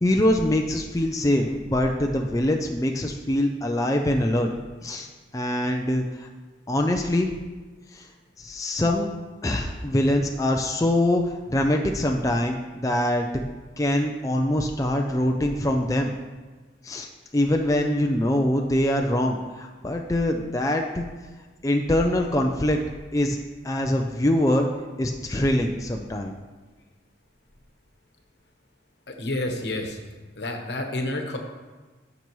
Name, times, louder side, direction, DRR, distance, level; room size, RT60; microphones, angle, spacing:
voice 1, 0.0-4.5 4.8-6.3 6.7-7.3 7.9-8.1 8.4-9.1 9.4-13.3 13.8-16.1 16.8-21.0 21.6-22.8 23.1-23.4 23.6-24.7 25.0-26.4, left 1 dB, 20° left, 2 dB, 0.4 m, -24 dB
voice 2, 29.1-30.0 30.4-31.4, left 1 dB, 70° left, 4 dB, 1.1 m, -29 dB
13.5 x 6.0 x 3.1 m, 1.3 s
head